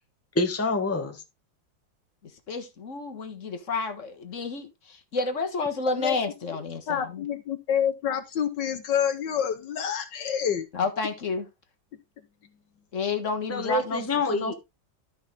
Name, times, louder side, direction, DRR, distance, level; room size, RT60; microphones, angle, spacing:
voice 1, 0.3-1.1 13.5-14.5, left 2 dB, 10° left, 1.1 m, -26 dB
voice 2, 2.5-7.3 10.7-11.5 12.9-14.5, left 3 dB, 40° left, 1.6 m, -30 dB
voice 3, 6.9-10.7, left 8 dB, 65° left, 1.5 m, -27 dB
12.5 x 5.6 x 3.7 m
omnidirectional pair, 2.1 m